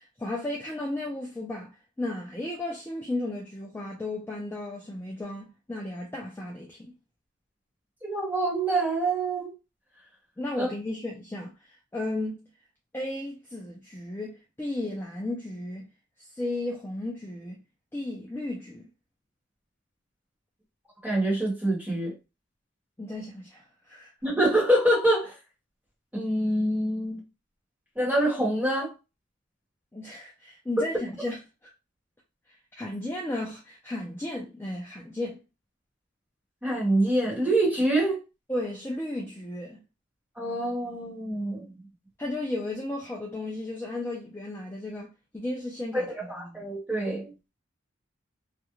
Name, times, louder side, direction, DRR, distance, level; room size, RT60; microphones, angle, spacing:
voice 1, 0.0-6.9 10.4-12.4 12.9-15.9 16.2-17.6 17.9-18.9 23.0-24.1 29.9-31.4 31.6-31.7 32.8-35.4 38.5-39.8 42.2-46.7, left 1 dB, 10° left, 0.3 m, -34 dB
voice 2, 8.0-9.5 10.6-10.7 21.0-22.1 24.2-25.4 26.1-27.2 27.9-28.9 30.8-30.9 36.6-38.2 40.4-41.6 45.9-47.3, right 1 dB, 10° right, 1.1 m, -25 dB
2.4 x 2.1 x 2.9 m
head